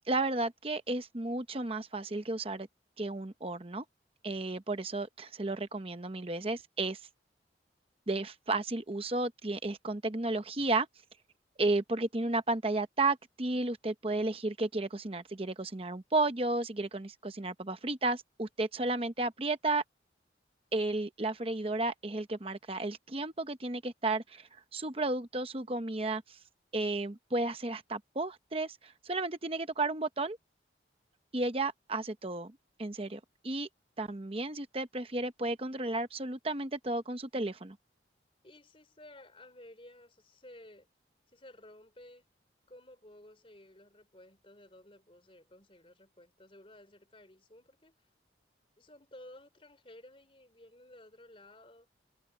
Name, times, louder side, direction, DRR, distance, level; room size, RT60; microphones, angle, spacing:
voice 1, 0.1-2.7 3.0-3.8 4.2-7.0 8.1-10.9 11.6-19.8 20.7-26.4 26.7-30.4 31.3-32.5 32.8-33.7 34.0-37.8, right 2 dB, 30° right, 0.9 m, -33 dB
voice 2, 38.4-40.9 41.3-42.3 42.7-48.1 48.8-51.9, left 1 dB, 30° left, 4.0 m, -55 dB
head